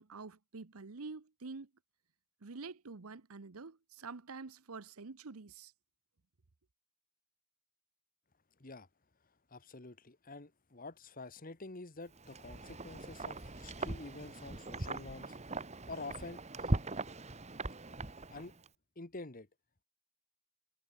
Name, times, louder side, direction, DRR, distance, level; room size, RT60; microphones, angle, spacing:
voice 1, 0.0-1.7 2.4-5.7, right 4 dB, 75° right, 0.9 m, -47 dB
voice 2, 9.5-15.4 15.9-16.7 18.3-18.5 19.0-19.5, left 3 dB, 40° left, 1.5 m, -48 dB
Wind, 12.2-18.7, right 2 dB, 30° right, 1.7 m, -40 dB
head